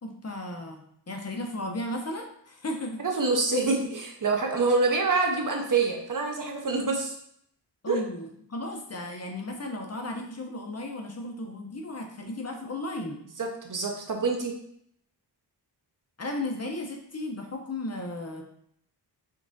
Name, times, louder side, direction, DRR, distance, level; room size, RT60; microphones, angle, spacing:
voice 1, 0.0-3.0 7.8-13.2 16.2-18.4, left 1 dB, 35° left, 2 dB, 0.7 m, -35 dB
voice 2, 3.0-7.1 7.9-8.0 13.4-14.6, right 3 dB, 45° right, 1 dB, 0.9 m, -26 dB
5.3 x 3.6 x 2.6 m, 0.68 s
wide cardioid pair, 120°, 43 cm